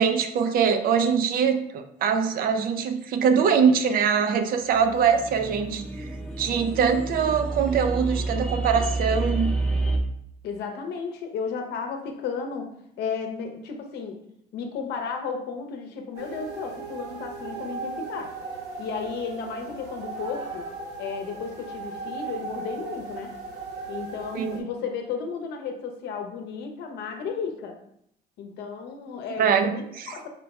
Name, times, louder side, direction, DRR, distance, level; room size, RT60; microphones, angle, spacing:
voice 1, 0.0-5.8 6.4-9.5 24.3-24.7 29.4-29.8, right 6 dB, 60° right, 8 dB, 0.5 m, -22 dB
sound 1, 4.7-10.0, right 2 dB, 5° left, 0.6 m, -29 dB
voice 2, 10.4-12.7 13.0-14.2 14.5-18.3 18.8-20.7 21.0-23.3 23.9-27.8 28.4-30.3, left 5 dB, 80° left, 4 dB, 0.7 m, -33 dB
sound 2, 16.1-24.6, right 4 dB, 80° right, 1.1 m, -37 dB
4.4 x 2.3 x 4.1 m, 0.72 s
cardioid pair, 110°, 17 cm